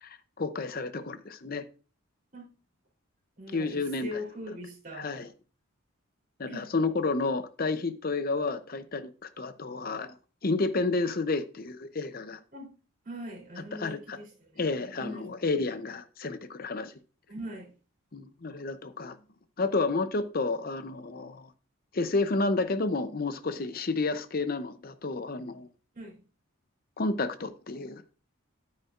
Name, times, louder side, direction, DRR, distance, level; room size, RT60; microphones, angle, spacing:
voice 1, 0.0-1.6 3.5-4.2 5.0-5.3 6.4-10.1 10.4-12.4 13.7-14.2 14.6-16.9 18.1-19.2 19.6-21.5 21.9-25.7 27.0-28.0, left 3 dB, 45° left, 0.6 m, -31 dB
voice 2, 3.4-5.1 6.5-6.7 12.5-12.7 13.0-14.6 15.0-15.4 17.3-17.7 25.9-26.2, equal, 40° right, 3.4 m, -41 dB
9.4 x 8.8 x 2.5 m
head